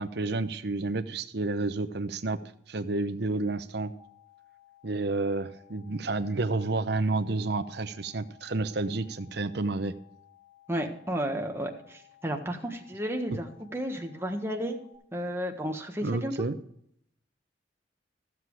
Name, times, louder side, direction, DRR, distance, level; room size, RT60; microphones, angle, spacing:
voice 1, 0.0-2.4 2.7-3.9 4.8-9.9 16.0-16.6, right 3 dB, 65° right, 11 dB, 0.9 m, -30 dB
sound 1, 4.0-14.9, left 13 dB, 80° left, 4.0 m, -59 dB
voice 2, 10.7-14.8 15.1-16.3, equal, 15° right, 2 dB, 1.5 m, -32 dB
15.0 x 7.7 x 4.8 m, 0.71 s
head